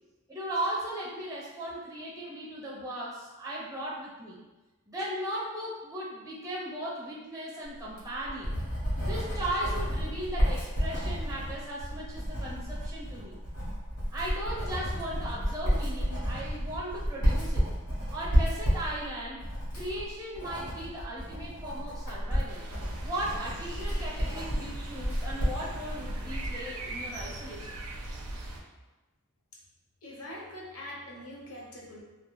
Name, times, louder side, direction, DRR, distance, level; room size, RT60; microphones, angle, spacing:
voice 1, 0.3-4.4 4.8-8.5 9.0-13.4 14.1-17.7 18.1-19.4 19.7-22.7 23.0-27.8, right 1 dB, 15° right, -5 dB, 0.5 m, -37 dB
Writing, 7.8-26.6, equal, 90° left, 1.0 m, -31 dB
sound 1, 22.5-28.6, right 1 dB, 90° right, 0.4 m, -41 dB
voice 2, 30.0-32.0, left 1 dB, 70° left, -3 dB, 0.6 m, -43 dB
2.3 x 2.1 x 2.9 m, 1.1 s
head